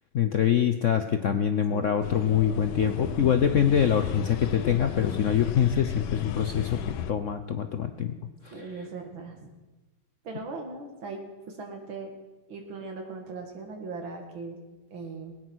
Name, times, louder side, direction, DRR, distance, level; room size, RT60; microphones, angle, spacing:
voice 1, 0.1-6.8 7.1-8.1 8.4-8.7, left 8 dB, 65° left, 8 dB, 0.7 m, -24 dB
sound 1, 2.0-7.1, left 10 dB, 85° left, 1.6 m, -34 dB
voice 2, 8.5-9.5 10.2-12.1 12.5-14.6 14.9-15.3, right 3 dB, 80° right, 3 dB, 2.7 m, -39 dB
19.0 x 9.6 x 6.3 m, 1.1 s
omnidirectional pair, 2.1 m